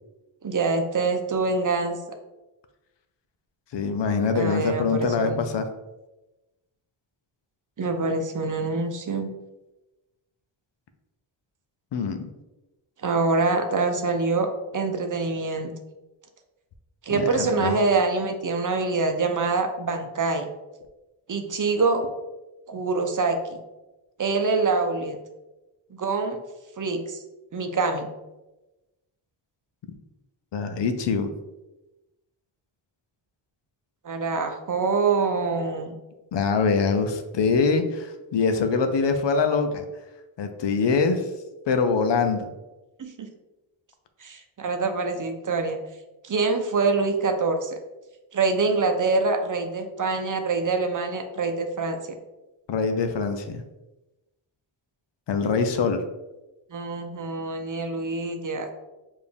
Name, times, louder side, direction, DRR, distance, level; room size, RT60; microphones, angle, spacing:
voice 1, 0.4-2.0 4.3-5.4 7.8-9.3 13.0-15.7 17.0-20.5 21.3-22.0 22.7-23.6 24.2-25.2 25.9-26.4 26.8-27.2 27.5-28.1 34.0-36.0 43.0-43.3 44.2-45.8 46.2-47.8 48.3-52.0 56.7-58.7, right 4 dB, 40° right, 5 dB, 0.7 m, -25 dB
voice 2, 3.7-5.6 11.9-12.2 17.1-17.7 30.5-31.3 36.3-39.8 40.4-41.3 41.7-42.5 52.7-53.6 55.3-56.0, left 5 dB, 60° left, 8 dB, 0.7 m, -24 dB
4.8 x 2.7 x 3.4 m, 1.0 s
cardioid pair, 60°, 49 cm